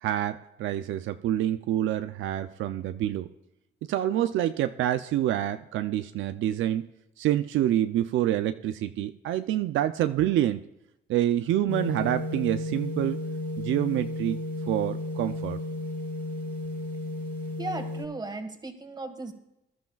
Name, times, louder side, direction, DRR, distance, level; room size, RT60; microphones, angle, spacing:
voice 1, 0.0-3.3 3.9-6.9 7.2-10.6 11.1-13.2 13.6-14.4 14.7-15.6, right 12 dB, 80° right, 10 dB, 0.5 m, -27 dB
sound 1, 11.7-18.1, left 2 dB, 45° left, 3.5 m, -33 dB
voice 2, 17.6-19.3, right 2 dB, 20° right, 6 dB, 1.6 m, -36 dB
19.5 x 11.5 x 2.3 m, 0.88 s
cardioid pair, 90°, 20 cm